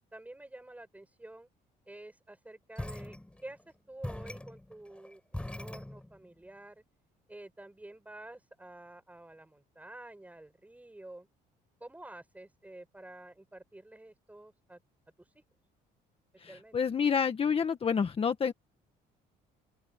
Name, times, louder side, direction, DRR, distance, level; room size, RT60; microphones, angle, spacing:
voice 1, 0.1-1.5 1.9-3.6 3.9-6.8 7.3-11.3 11.8-14.8 16.5-16.8, right 1 dB, 10° right, 6.9 m, -49 dB
sound 1, 2.8-3.7 4.0-6.4, left 1 dB, 5° left, 6.7 m, -42 dB
voice 2, 16.4-18.5, left 6 dB, 35° left, 1.7 m, -28 dB
open air
cardioid pair, 110°, 17 cm